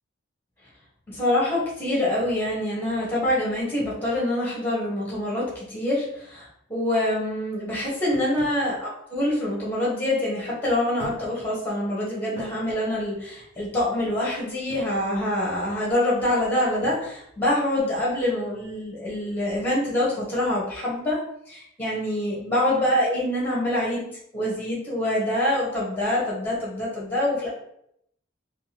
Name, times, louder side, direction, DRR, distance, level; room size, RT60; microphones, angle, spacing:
voice 1, 1.1-6.4 6.7-21.2 21.5-27.5, left 1 dB, 10° left, -6 dB, 1.3 m, -25 dB
sound 1, 8.1-8.7 9.8-9.9 11.0-11.4 11.8-11.9 12.4-12.6 14.7-15.0 16.8-17.1, equal, 35° right, 1.0 m, -41 dB
3.7 x 2.5 x 2.9 m, 0.74 s
head